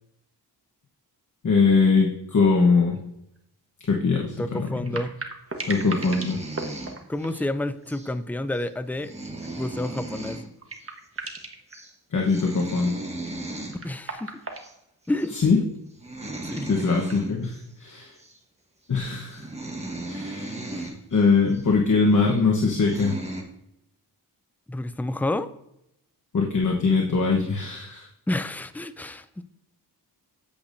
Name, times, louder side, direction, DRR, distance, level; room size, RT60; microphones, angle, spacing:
voice 1, 1.4-3.0 3.9-5.0 5.7-6.4 12.1-13.0 15.3-15.6 16.7-18.1 18.9-19.5 20.1-20.5 21.1-23.2 26.3-28.1, left 4 dB, 45° left, 0 dB, 1.2 m, -22 dB
sound 1, 2.9-3.1 3.4-3.5 4.6-8.1 8.5-8.8 9.2-9.3 10.2-10.3 10.6-11.8 13.3-15.4 16.5-17.2, right 3 dB, 35° right, 1.2 m, -37 dB
voice 2, 4.4-5.1 7.1-9.1 9.6-10.4 13.8-14.3 15.1-15.6 16.4-16.7 20.7-20.9 24.7-25.5 28.3-29.3, left 1 dB, 5° left, 12 dB, 0.3 m, -29 dB
sound 2, 5.6-7.4 7.9-8.1 8.5-8.6 8.9-10.5 10.7-10.9 11.2-11.4 11.7-11.9 12.2-13.8 14.6-14.7 15.2-15.4 15.9-17.6 18.2-18.4 19.0-19.1 19.3-21.0 21.5-21.6 22.3-22.4 22.7-23.4, right 2 dB, 15° right, 1.4 m, -36 dB
8.5 x 8.2 x 2.6 m, 0.80 s
wide cardioid pair, 110°, 41 cm